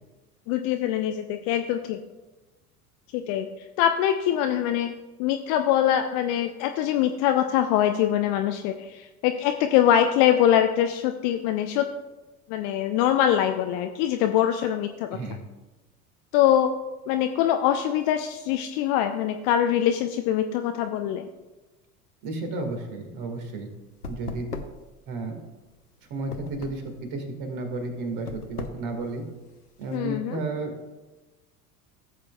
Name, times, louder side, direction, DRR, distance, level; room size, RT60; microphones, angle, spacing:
voice 1, 0.5-2.0 3.1-3.5 3.8-4.9 5.2-11.9 12.5-15.1 16.3-16.7 17.1-21.3 29.9-30.4, left 10 dB, 30° left, 7 dB, 0.3 m, -23 dB
voice 2, 15.1-15.4 22.2-23.7 24.1-24.5 25.1-25.4 26.1-29.2 29.8-30.7, right 3 dB, 45° right, 4 dB, 1.9 m, -32 dB
sound 1, 22.4-30.0, left 4 dB, 90° left, 0.7 m, -40 dB
15.0 x 7.5 x 2.3 m, 1.1 s
figure-of-eight pair, 75°, 45 cm